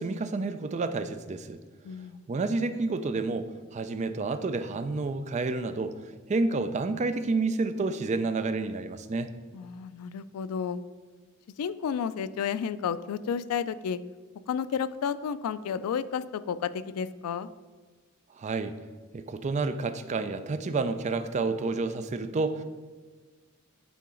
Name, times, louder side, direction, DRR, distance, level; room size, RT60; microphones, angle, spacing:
voice 1, 0.0-1.6 2.3-6.0 6.3-9.3 18.3-18.8 19.1-22.6, right 3 dB, 30° right, 10 dB, 0.3 m, -29 dB
voice 2, 1.8-2.3 9.5-10.8 11.6-14.0 14.5-17.5, left 7 dB, 90° left, 15 dB, 0.3 m, -32 dB
8.5 x 3.8 x 3.8 m, 1.4 s
head